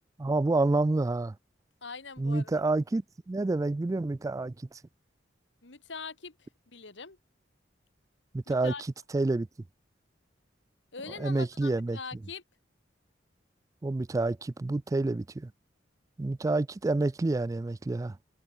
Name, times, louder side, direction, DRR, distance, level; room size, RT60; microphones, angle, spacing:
voice 1, 0.2-1.4 2.2-4.8 8.3-8.7 9.1-9.5 11.1-12.0 13.8-15.5 16.2-18.2, right 2 dB, 20° right, 0.3 m, -28 dB
voice 2, 1.8-2.5 5.6-7.2 8.5-8.8 10.9-12.4, left 4 dB, 75° left, 2.1 m, -42 dB
head